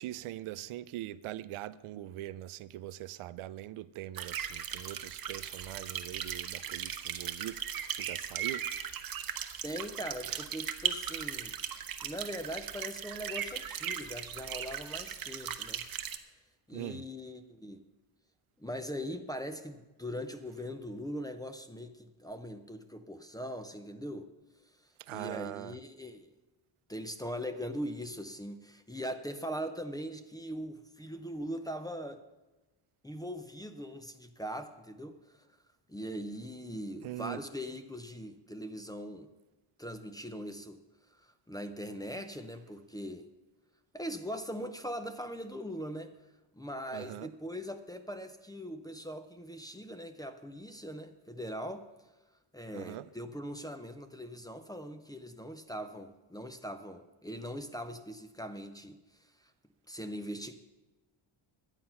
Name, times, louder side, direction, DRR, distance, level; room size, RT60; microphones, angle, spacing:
voice 1, 0.0-7.6 8.0-8.7 10.3-10.4 16.7-17.0 25.0-25.8 37.0-37.4 46.9-47.3 52.7-53.1, right 14 dB, 80° right, 0.6 m, -42 dB
sound 1, 4.1-16.2, right 9 dB, 45° right, 0.8 m, -38 dB
voice 2, 9.6-11.6 12.0-15.9 16.7-17.8 18.6-24.3 25.1-26.3 26.9-32.2 33.0-35.5 35.9-39.3 39.8-40.8 41.1-43.3 43.9-46.1 46.6-51.9 52.5-59.0 59.9-60.5, equal, 10° left, 0.5 m, -41 dB
11.5 x 9.0 x 5.6 m
cardioid pair, 140°, 49 cm